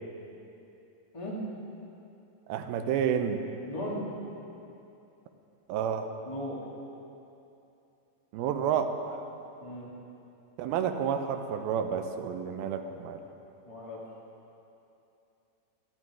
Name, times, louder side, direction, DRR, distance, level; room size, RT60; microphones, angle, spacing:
voice 1, 2.5-3.4 5.7-6.1 8.3-9.3 10.6-13.2, right 8 dB, 85° right, 7 dB, 2.6 m, -30 dB
voice 2, 3.7-4.0 6.2-6.6 9.6-9.9 13.7-14.0, left 1 dB, 40° left, -5 dB, 0.4 m, -37 dB
15.0 x 11.0 x 4.7 m, 2.8 s
omnidirectional pair, 4.3 m